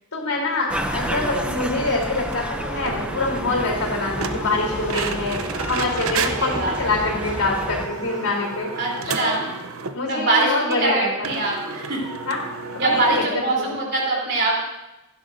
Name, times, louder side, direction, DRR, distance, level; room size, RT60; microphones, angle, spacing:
voice 1, 0.1-8.7 9.1-9.3 9.9-11.4 12.3-12.4 12.7-13.8, left 2 dB, 90° left, -1 dB, 3.6 m, -25 dB
sound 1, 0.7-7.9, right 1 dB, 5° right, 0.5 m, -31 dB
sound 2, 1.0-1.6 2.0-2.1 2.3-2.4 2.8-10.0 10.4-10.5 10.7-10.8 11.2-13.3, right 4 dB, 75° right, 0.7 m, -32 dB
sound 3, 1.9-8.6, left 3 dB, 35° left, 1.1 m, -38 dB
voice 2, 6.4-6.8 8.8-9.5 10.1-12.0 12.8-14.7, right 2 dB, 50° right, -3 dB, 3.5 m, -23 dB
16.5 x 11.5 x 2.7 m, 0.99 s
head